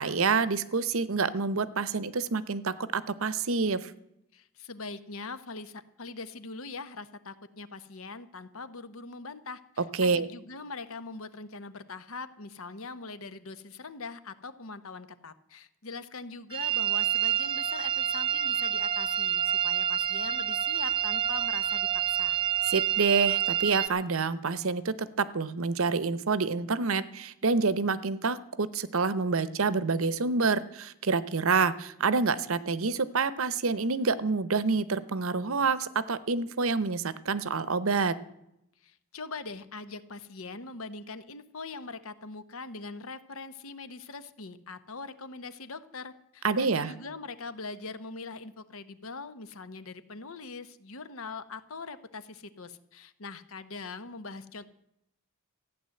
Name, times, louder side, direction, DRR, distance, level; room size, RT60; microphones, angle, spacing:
voice 1, 0.0-3.9 10.0-10.3 22.7-38.2 46.4-46.9, right 4 dB, 65° right, 16 dB, 0.8 m, -27 dB
voice 2, 4.3-22.4 38.8-54.7, left 3 dB, 70° left, 13 dB, 1.0 m, -42 dB
sound 1, 16.5-23.9, right 11 dB, 25° right, 0.9 m, -28 dB
15.0 x 9.4 x 7.7 m, 0.81 s
head